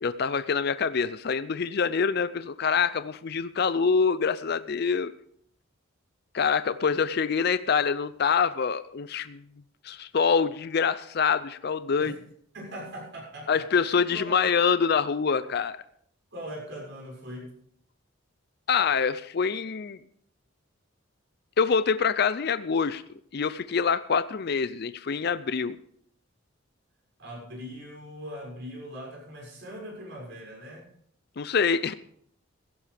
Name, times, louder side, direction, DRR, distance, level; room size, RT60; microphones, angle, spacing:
voice 1, 0.0-5.1 6.3-9.4 9.8-12.1 13.5-15.8 18.7-20.0 21.6-23.0 23.3-25.8 31.4-31.9, left 6 dB, 50° left, 13 dB, 0.5 m, -25 dB
voice 2, 12.5-14.5 16.3-17.5 27.2-30.9, equal, 60° right, -1 dB, 6.6 m, -41 dB
16.0 x 16.0 x 3.4 m, 0.65 s
head